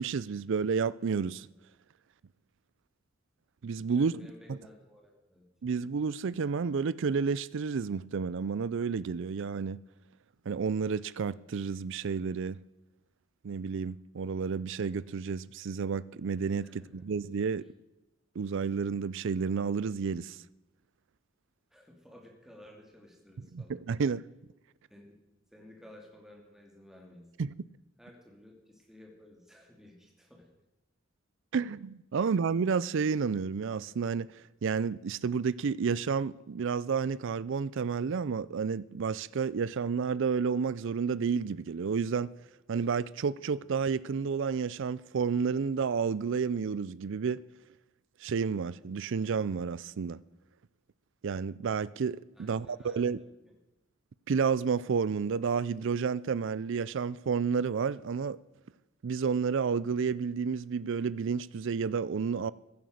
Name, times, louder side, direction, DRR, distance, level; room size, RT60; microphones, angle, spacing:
voice 1, 0.0-1.5 3.6-4.1 5.6-9.8 10.5-12.6 13.4-17.6 18.4-20.4 23.5-24.2 27.4-27.5 31.5-42.3 42.7-47.4 48.2-50.2 51.2-53.2 54.3-58.4 59.0-62.5, right 5 dB, 65° right, 0.4 m, -31 dB
voice 2, 3.9-5.5 16.6-16.9 21.7-23.8 24.9-25.1 25.5-27.3 28.0-30.5 32.1-32.3 52.3-53.3, left 1 dB, ahead, 2.7 m, -54 dB
15.5 x 11.0 x 6.5 m
head